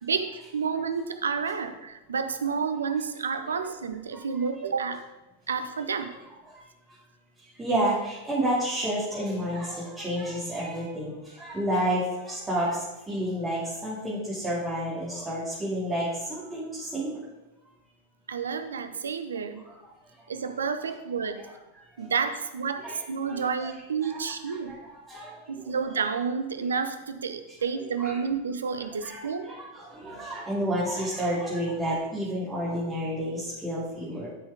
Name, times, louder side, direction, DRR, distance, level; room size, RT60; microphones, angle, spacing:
voice 1, 0.0-5.0 5.5-6.1 18.3-19.6 20.3-21.4 22.0-24.7 25.5-29.5, right 6 dB, 70° right, 10 dB, 0.8 m, -30 dB
voice 2, 7.6-17.2 19.7-19.8 21.4-21.5 21.8-22.1 22.8-22.9 23.2-23.7 24.0-25.8 28.0-28.2 29.0-29.2 29.4-34.3, right 1 dB, 15° right, -9 dB, 2.7 m, -30 dB
12.0 x 6.2 x 3.6 m, 1.0 s
figure-of-eight pair, 90°, 0 cm